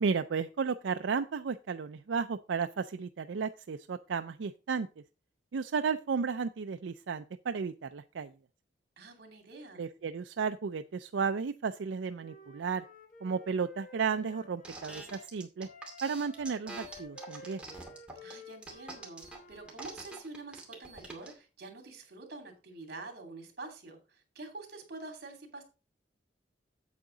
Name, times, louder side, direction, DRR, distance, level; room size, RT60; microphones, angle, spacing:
voice 1, 0.0-4.9 5.5-8.3 9.8-12.8 13.2-15.7 16.0-17.6, right 5 dB, 90° right, 9 dB, 0.4 m, -33 dB
voice 2, 9.0-9.9 18.2-25.6, right 3 dB, 55° right, 4 dB, 2.9 m, -47 dB
Wind instrument woodwind instrument, 11.7-15.3 15.6-19.8, left 3 dB, 50° left, 1.3 m, -53 dB
sound 1, 14.6-21.3, right 2 dB, 5° right, 2.3 m, -45 dB
8.5 x 8.1 x 3.9 m, 0.32 s
head